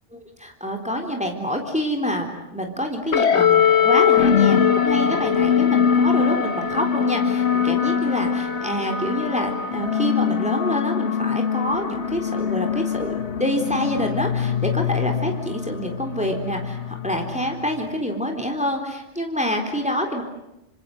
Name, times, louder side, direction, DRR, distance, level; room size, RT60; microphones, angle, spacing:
voice 1, 0.4-20.2, equal, 5° right, 3 dB, 3.8 m, -27 dB
sound 1, 3.1-17.9, left 7 dB, 65° left, 1.7 m, -22 dB
28.0 x 26.0 x 7.9 m, 0.89 s
omnidirectional pair, 1.3 m